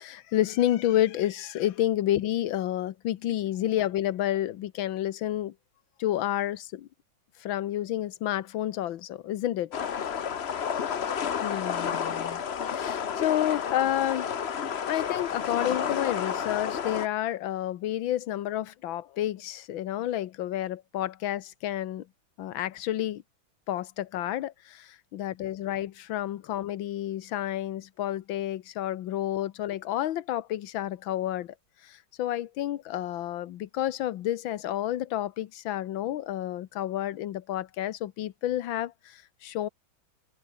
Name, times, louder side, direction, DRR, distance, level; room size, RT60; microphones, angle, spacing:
voice 1, 0.0-5.5 6.0-6.9 7.4-9.8 11.4-14.3 14.8-22.1 22.4-23.2 23.7-31.5 31.8-39.7, left 13 dB, 80° left, 1.7 m, -30 dB
sound 1, 9.7-17.1, left 7 dB, 45° left, 0.9 m, -31 dB
omnidirectional pair, 2.1 m